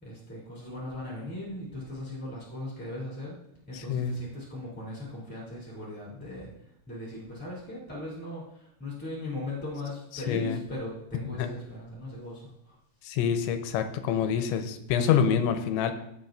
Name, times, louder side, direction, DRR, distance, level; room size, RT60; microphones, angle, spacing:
voice 1, 0.0-3.3 3.7-6.5 6.9-12.7, left 1 dB, 5° left, -7 dB, 1.8 m, -38 dB
voice 2, 3.7-4.1 10.1-10.6 11.4-11.5 13.0-15.9, left 8 dB, 80° left, 7 dB, 3.0 m, -26 dB
18.0 x 7.8 x 2.6 m, 0.77 s
omnidirectional pair, 5.4 m